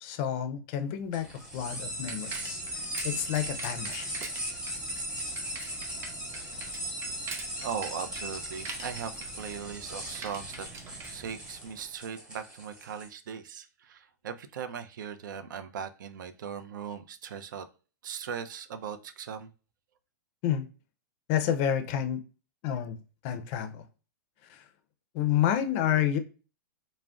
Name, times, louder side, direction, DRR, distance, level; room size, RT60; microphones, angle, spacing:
voice 1, 0.0-4.1 20.4-20.7 21.3-22.2 22.6-23.0 23.2-23.8 24.5-24.6 25.1-26.2, left 10 dB, 40° left, 8 dB, 0.4 m, -29 dB
sound 1, 1.1-13.1, equal, 10° right, 0.8 m, -38 dB
Bicycle, 1.1-11.9, right 3 dB, 25° right, 0.5 m, -45 dB
voice 2, 7.6-10.7 11.1-17.7 18.0-19.5, right 7 dB, 85° right, 9 dB, 0.4 m, -39 dB
2.4 x 2.0 x 3.4 m, 0.34 s
hypercardioid pair, 145°, 10 cm